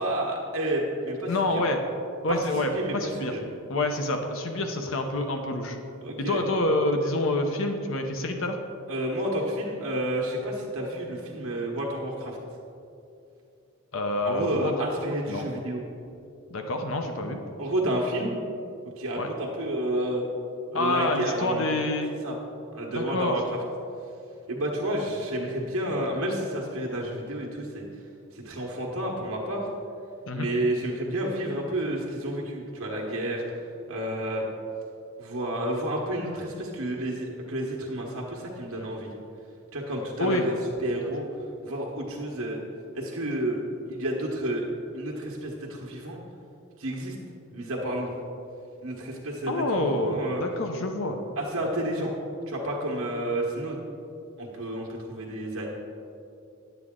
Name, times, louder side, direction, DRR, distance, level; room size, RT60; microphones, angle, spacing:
voice 1, 0.0-1.6 2.3-3.4 6.0-6.5 8.9-12.4 14.2-15.8 17.6-18.4 18.8-20.2 20.7-21.6 22.2-22.4 22.7-23.4 24.5-27.9 28.3-29.7 30.3-33.4 33.9-34.5 35.2-39.1 39.7-40.5 40.8-41.2 41.6-42.6 42.9-43.6 43.8-44.7 44.9-46.2 46.8-47.2 47.5-48.1 48.8-50.4 51.4-52.1 52.5-53.8 54.4-55.7, right 1 dB, 75° right, -2 dB, 1.2 m, -30 dB
voice 2, 1.3-1.8 2.2-3.3 3.7-5.8 6.2-8.6 13.9-14.8 15.3-15.5 16.5-17.4 19.2-19.3 20.7-22.1 22.9-23.4 30.3-30.5 40.2-40.4 49.5-51.2, left 2 dB, 65° left, 4 dB, 0.7 m, -27 dB
10.5 x 8.0 x 3.7 m, 2.6 s
head